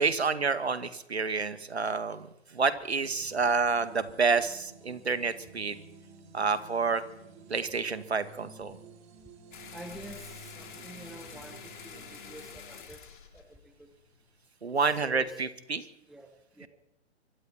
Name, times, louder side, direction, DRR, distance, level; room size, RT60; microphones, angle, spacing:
voice 1, 0.0-2.3 2.5-5.8 6.3-7.0 7.5-8.8 14.6-15.8 16.6-16.7, right 4 dB, 65° right, 11 dB, 2.3 m, -28 dB
sound 1, 3.0-12.5, right 4 dB, 20° right, 3.7 m, -52 dB
sound 2, 9.5-14.4, left 7 dB, 45° left, 4.0 m, -48 dB
voice 2, 9.7-13.0 13.3-13.9 14.8-15.4 16.1-16.7, right 1 dB, ahead, 8 dB, 1.0 m, -48 dB
25.0 x 24.5 x 4.5 m, 0.80 s
figure-of-eight pair, 130°, 34 cm